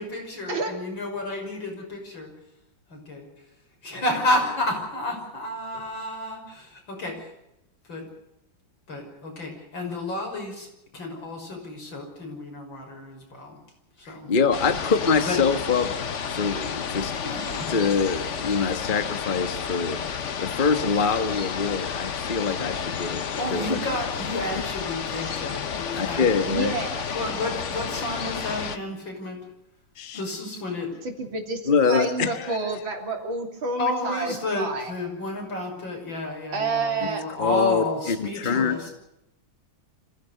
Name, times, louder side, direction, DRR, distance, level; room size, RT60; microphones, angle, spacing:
voice 1, 0.0-2.3 2.9-3.3 3.8-7.3 7.9-8.1 8.9-13.6 14.0-14.3 15.2-15.4 17.2-17.8 23.1-26.3 27.1-29.4 30.1-30.9 33.8-38.9, left 1 dB, 75° left, 2 dB, 6.9 m, -31 dB
voice 2, 14.0-15.9 16.3-17.1 17.7-20.0 20.4-23.2 23.5-23.8 24.5-24.6 26.0-26.7 30.0-30.2 31.7-32.6 37.4-38.8, left 5 dB, 30° left, 8 dB, 1.3 m, -24 dB
sound 1, 14.5-28.8, left 7 dB, 45° left, 1.1 m, -31 dB
voice 3, 26.5-27.2 31.0-34.9 36.5-37.3 38.4-38.9, right 3 dB, 80° right, 3 dB, 3.9 m, -29 dB
26.5 x 16.0 x 6.7 m, 0.86 s
omnidirectional pair, 2.1 m